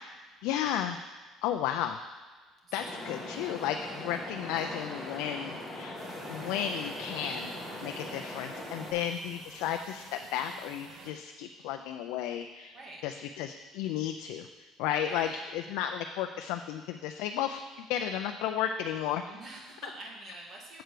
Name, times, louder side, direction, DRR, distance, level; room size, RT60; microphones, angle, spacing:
voice 1, 0.4-1.0 1.4-2.0 2.7-6.0 6.3-7.5 7.8-12.8 13.0-14.5 14.8-19.2, left 9 dB, 85° left, 6 dB, 0.4 m, -33 dB
sound 1, 2.8-8.9, left 1 dB, 10° left, 2.1 m, -41 dB
sound 2, 6.0-11.1, right 4 dB, 55° right, 1.0 m, -51 dB
voice 2, 15.0-15.4 19.3-20.8, right 2 dB, 35° right, -2 dB, 1.9 m, -46 dB
7.7 x 4.6 x 6.7 m, 1.4 s
cardioid pair, 140°, 0 cm